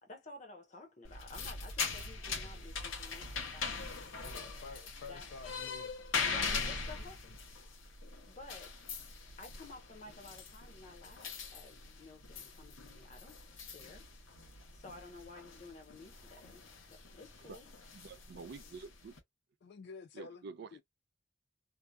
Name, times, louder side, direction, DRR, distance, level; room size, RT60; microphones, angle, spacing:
voice 1, 0.0-4.1 5.1-5.3 6.3-7.2 8.3-8.8 9.4-14.1 14.7-17.7, left 2 dB, 35° left, 0.8 m, -53 dB
sound 1, 1.0-19.2, left 5 dB, 80° left, 0.9 m, -42 dB
voice 2, 3.9-5.9 6.3-7.3 19.6-20.5 20.7-20.8, left 5 dB, 55° left, 0.3 m, -50 dB
voice 3, 17.9-19.1 20.1-20.8, right 4 dB, 55° right, 0.4 m, -48 dB
2.7 x 2.2 x 2.2 m
head